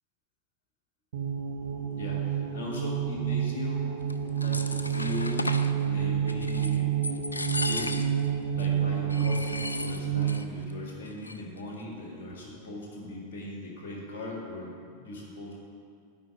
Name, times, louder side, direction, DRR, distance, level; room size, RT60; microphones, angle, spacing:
sound 1, 1.1-10.5, right 8 dB, 60° right, 1.0 m, -29 dB
voice 1, 1.9-3.9 4.3-5.5 5.8-6.9 7.6-8.2 8.5-15.5, left 2 dB, 45° left, -2 dB, 1.8 m, -39 dB
sound 2, 4.1-5.7 6.3-6.8 7.0-8.3 8.6-8.7 9.1-10.4 10.7-10.8 11.1-11.6, left 2 dB, 80° left, 0.4 m, -35 dB
10.5 x 4.4 x 7.8 m, 2.3 s
figure-of-eight pair, 90°, 0 cm